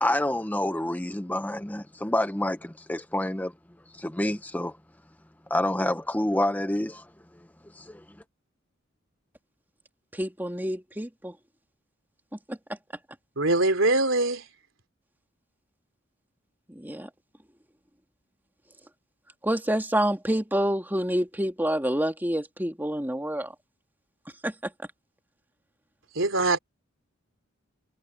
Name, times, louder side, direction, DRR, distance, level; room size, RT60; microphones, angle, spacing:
voice 1, 0.0-3.5 4.0-4.7 5.5-7.0 7.8-8.0, left 1 dB, 10° left, 0.8 m, -27 dB
voice 2, 10.1-11.3 12.5-12.6 16.7-17.1 19.4-23.5 24.4-24.5, right 1 dB, 10° right, 2.3 m, -27 dB
voice 3, 13.4-14.4 26.1-26.6, right 2 dB, 75° right, 3.2 m, -22 dB
head